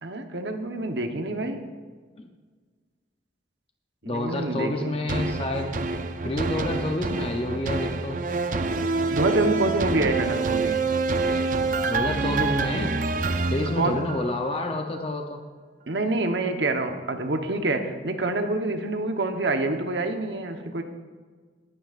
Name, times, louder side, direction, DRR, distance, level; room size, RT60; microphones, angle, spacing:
voice 1, 0.0-1.6 4.0-4.9 9.0-10.8 13.8-14.0 15.9-20.8, right 2 dB, 70° right, 5 dB, 1.1 m, -27 dB
voice 2, 4.1-5.8 6.2-8.2 11.9-12.9 13.5-15.4, left 1 dB, 30° left, 3 dB, 0.7 m, -28 dB
sound 1, 5.1-14.5 14.9-15.0, right 3 dB, 45° right, 0.5 m, -27 dB
19.5 x 9.3 x 2.5 m, 1.5 s
head